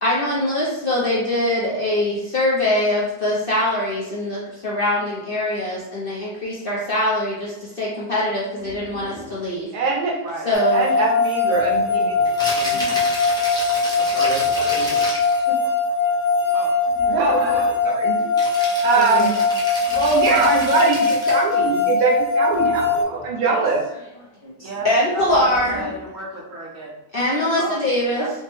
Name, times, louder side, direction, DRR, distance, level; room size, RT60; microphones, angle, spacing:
voice 1, 0.0-7.3 7.8-9.7 10.4-10.9 19.1-19.3 24.8-25.9 27.1-28.3, left 1 dB, 55° left, -6 dB, 0.6 m, -22 dB
sound 1, 8.5-9.5 11.5-12.4 14.2-15.2 16.8-17.9 19.8-20.8 22.4-23.5 25.1-26.1, equal, 35° right, 0.6 m, -39 dB
voice 2, 9.7-10.2 10.7-13.0 14.1-15.1 15.5-15.6 17.1-18.3 18.8-19.4 19.9-23.8, right 4 dB, 85° right, -1 dB, 1.2 m, -23 dB
sound 2, 10.5-23.0, left 4 dB, 75° left, 1.0 m, -21 dB
Rattle (instrument), 12.2-15.4 18.4-21.6, equal, 5° left, 0.4 m, -31 dB
voice 3, 24.6-27.0 27.6-27.8 28.1-28.3, right 2 dB, 65° right, -3 dB, 1.1 m, -32 dB
3.4 x 2.0 x 3.0 m, 0.90 s
omnidirectional pair, 1.6 m